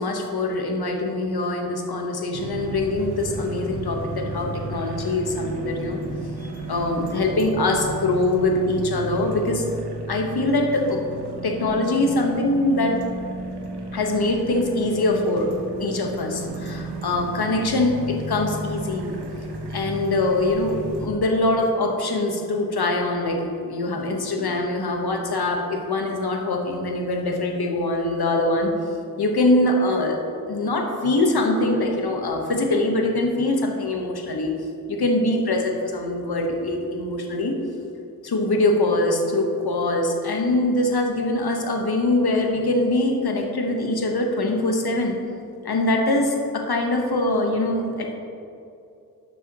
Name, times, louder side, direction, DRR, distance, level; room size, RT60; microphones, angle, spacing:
voice 1, 0.0-6.0 6.4-9.6 10.1-11.0 11.4-13.0 13.9-15.5 15.8-19.2 19.7-28.7 29.2-30.2 30.5-34.5 34.9-37.6 38.2-45.2 45.6-48.1, left 2 dB, 75° left, 2 dB, 1.2 m, -23 dB
sound 1, 2.3-21.1, right 2 dB, 85° right, 1.0 m, -34 dB
12.0 x 6.8 x 3.0 m, 2.6 s
cardioid pair, 50°, 39 cm